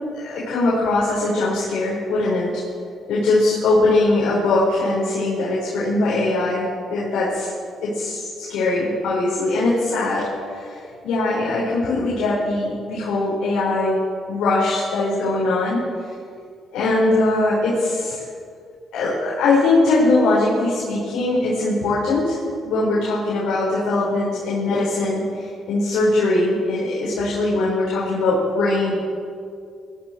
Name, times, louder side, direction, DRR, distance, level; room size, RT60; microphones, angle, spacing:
voice 1, 0.1-2.6 3.1-7.5 7.8-15.8 16.7-18.1 18.9-28.9, left 2 dB, 85° left, -6 dB, 4.6 m, -21 dB
20.5 x 13.5 x 4.5 m, 2.3 s
cardioid pair, 90°, 0 cm